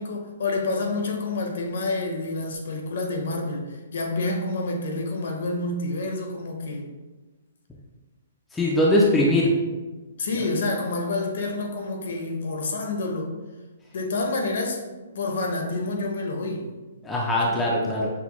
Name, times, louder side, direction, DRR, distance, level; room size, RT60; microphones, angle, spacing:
voice 1, 0.0-6.9 10.2-13.3 13.9-16.7 17.4-17.5, left 2 dB, 55° left, 2 dB, 0.8 m, -28 dB
voice 2, 8.5-9.5 17.0-18.1, left 1 dB, 5° left, -4 dB, 0.4 m, -21 dB
6.0 x 2.2 x 2.9 m, 1.3 s
hypercardioid pair, 175°, 0 cm